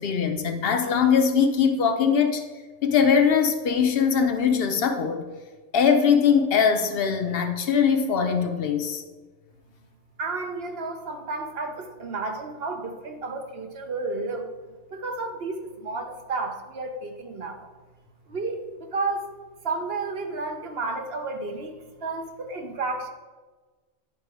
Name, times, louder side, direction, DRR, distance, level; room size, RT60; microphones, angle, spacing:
voice 1, 0.0-2.4 2.8-5.2 5.7-9.0, left 6 dB, 55° left, 6 dB, 0.9 m, -21 dB
voice 2, 10.2-14.5 14.9-17.7 18.3-19.3 19.6-23.1, right 3 dB, 55° right, 5 dB, 1.0 m, -32 dB
9.7 x 4.6 x 4.7 m, 1.3 s
omnidirectional pair, 1.3 m